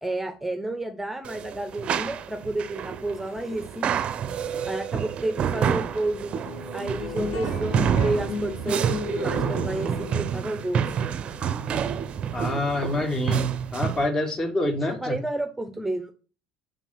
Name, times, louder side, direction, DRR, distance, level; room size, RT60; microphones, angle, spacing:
voice 1, 0.0-3.9 4.6-6.3 6.7-7.8 8.0-10.9 15.0-16.1, right 2 dB, 10° right, 0.9 m, -30 dB
sound 1, 1.2-14.1, right 8 dB, 45° right, 0.6 m, -28 dB
sound 2, 6.4-13.1, left 5 dB, 70° left, 1.3 m, -35 dB
voice 2, 12.3-15.2, left 1 dB, 25° left, 1.7 m, -26 dB
5.8 x 5.0 x 5.7 m
hypercardioid pair, 70°, 3 cm